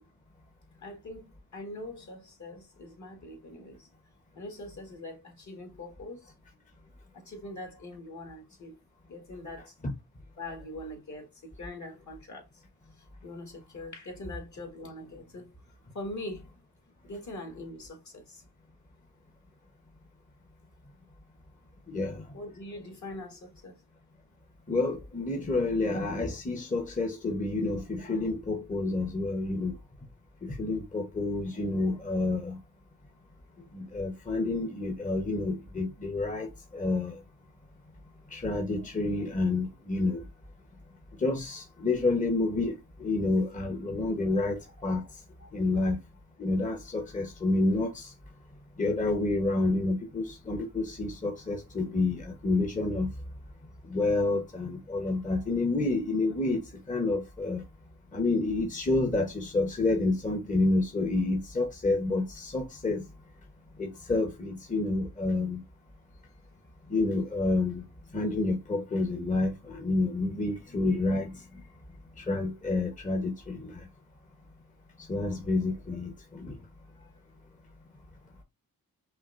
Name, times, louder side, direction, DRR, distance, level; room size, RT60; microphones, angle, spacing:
voice 1, 0.8-3.9 4.3-6.3 7.1-8.8 9.1-9.7 10.4-12.6 13.0-15.6 15.9-16.4 17.0-18.4 22.3-23.8 45.7-45.8 77.0-77.2, left 1 dB, 50° left, 1.7 m, -43 dB
voice 2, 21.9-22.2 24.7-29.7 30.4-32.6 33.7-37.2 38.3-40.3 41.2-45.0 45.5-46.0 46.4-48.1 48.8-53.1 53.9-56.6 56.9-57.6 58.1-63.0 63.8-65.6 66.9-67.9 68.1-71.4 72.2-73.9 75.1-76.6, left 2 dB, 20° left, 0.9 m, -29 dB
5.6 x 2.6 x 2.5 m
cardioid pair, 65°, 37 cm